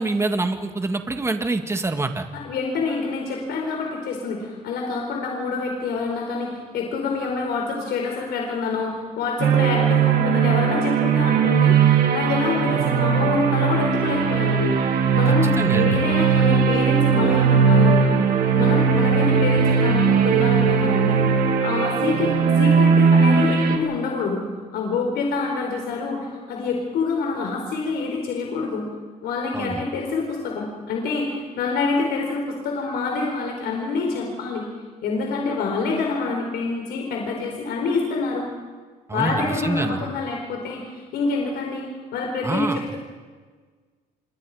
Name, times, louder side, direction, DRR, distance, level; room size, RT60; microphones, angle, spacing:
voice 1, 0.0-2.3 15.3-16.0 29.5-29.8 39.1-40.0 42.4-42.9, right 3 dB, 15° right, 6 dB, 2.0 m, -26 dB
voice 2, 2.3-14.7 15.1-18.1 18.6-21.2 21.6-24.4 24.7-28.8 29.2-34.6 35.0-38.5 39.1-41.8 42.1-43.0, left 4 dB, 75° left, 1 dB, 4.5 m, -26 dB
sound 1, 9.4-23.8, right 6 dB, 65° right, 3.3 m, -18 dB
27.5 x 23.5 x 5.1 m, 1.5 s
cardioid pair, 110°, 17 cm